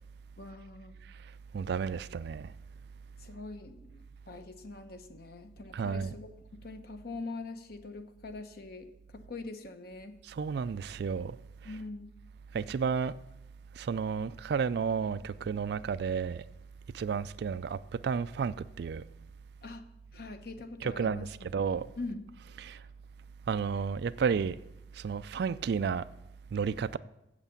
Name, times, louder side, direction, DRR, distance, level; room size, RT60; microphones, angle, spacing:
voice 1, 0.4-0.9 3.2-10.2 11.6-12.1 19.6-19.8 20.1-21.3 22.0-22.3, left 3 dB, 55° left, 0.9 m, -43 dB
voice 2, 1.5-2.5 5.7-6.1 10.3-11.4 11.6-11.8 12.5-13.2 13.8-16.4 16.9-19.0 20.8-21.9 22.6-22.8 23.5-24.6 24.9-26.1 26.5-27.0, right 6 dB, 60° right, 0.3 m, -32 dB
8.2 x 7.7 x 7.1 m
head